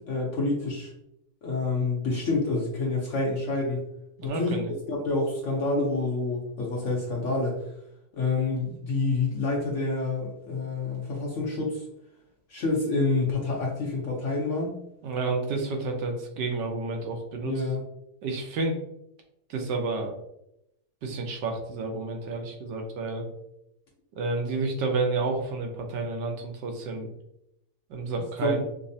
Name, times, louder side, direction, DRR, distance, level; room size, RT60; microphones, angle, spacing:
voice 1, 0.1-0.9 1.4-3.9 4.2-4.6 4.9-7.6 8.1-11.8 12.5-14.7 17.4-17.8 28.4-28.6, left 3 dB, 60° left, -2 dB, 0.8 m, -28 dB
voice 2, 4.2-4.7 15.0-17.6 18.2-18.8 19.5-20.1 21.0-23.3 24.1-27.1 27.9-28.6, right 3 dB, 85° right, 3 dB, 1.3 m, -30 dB
5.0 x 2.0 x 2.6 m, 0.80 s
omnidirectional pair, 1.8 m